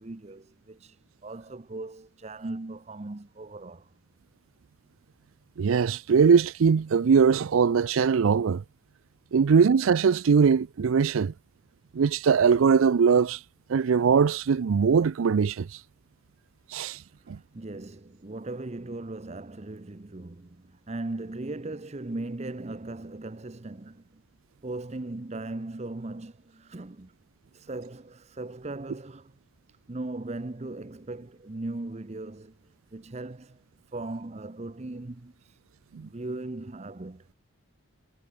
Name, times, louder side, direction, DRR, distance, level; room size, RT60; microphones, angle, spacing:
voice 1, 0.0-3.9 17.2-24.2 24.6-27.1 27.5-29.3 29.9-33.6 33.9-35.6 36.0-37.3, right 2 dB, 30° right, 0.7 m, -38 dB
voice 2, 5.6-8.6 9.3-11.3 11.9-13.4 13.7-15.7 16.7-17.0 17.3-17.4 35.9-36.1, right 6 dB, 80° right, 0.4 m, -21 dB
head